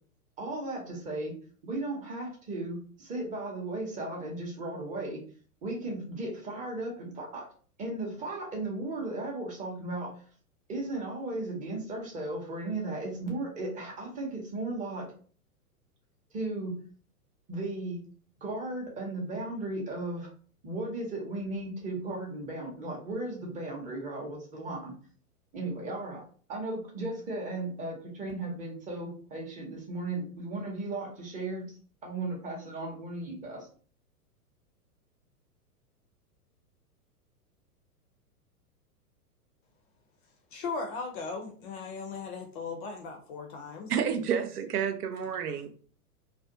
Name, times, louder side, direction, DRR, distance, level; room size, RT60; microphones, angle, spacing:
voice 1, 0.4-1.3 1.6-5.2 5.6-7.5 7.8-10.1 10.7-15.1 16.3-16.8 17.5-18.0 18.4-20.3 20.6-24.9 25.5-26.2 26.5-31.8 32.0-33.7, right 2 dB, 15° right, 0.6 m, -36 dB
voice 2, 40.5-43.9, left 4 dB, 35° left, 0.5 m, -37 dB
voice 3, 43.9-45.7, right 7 dB, 75° right, 0.5 m, -30 dB
2.4 x 2.1 x 2.6 m
hypercardioid pair, 110°, 46 cm